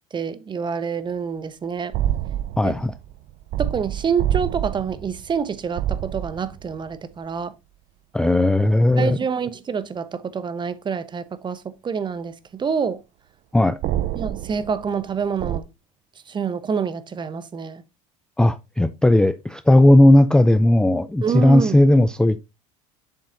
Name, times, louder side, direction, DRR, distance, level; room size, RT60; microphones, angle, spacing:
voice 1, 0.1-1.9 2.6-2.8 3.6-7.5 9.0-13.0 14.2-15.6 16.3-17.8 21.2-21.8, right 6 dB, 25° right, 0.9 m, -27 dB
sound 1, 1.9-6.9 13.8-15.6, right 12 dB, 50° right, 0.6 m, -27 dB
voice 2, 2.6-2.9 8.1-9.2 13.5-13.8 18.4-22.5, left 1 dB, 5° left, 0.4 m, -16 dB
7.6 x 6.8 x 2.6 m
hypercardioid pair, 90°, 17 cm